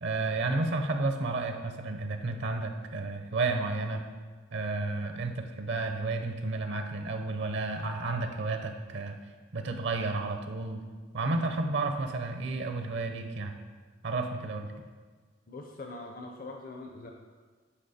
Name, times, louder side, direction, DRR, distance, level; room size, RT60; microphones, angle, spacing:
voice 1, 0.0-4.0 4.5-9.2 9.5-10.8 11.1-13.6 14.0-14.7, right 3 dB, 65° right, 6 dB, 0.7 m, -31 dB
voice 2, 15.5-17.1, left 2 dB, 50° left, 2 dB, 0.6 m, -42 dB
10.0 x 5.2 x 4.2 m, 1.5 s
head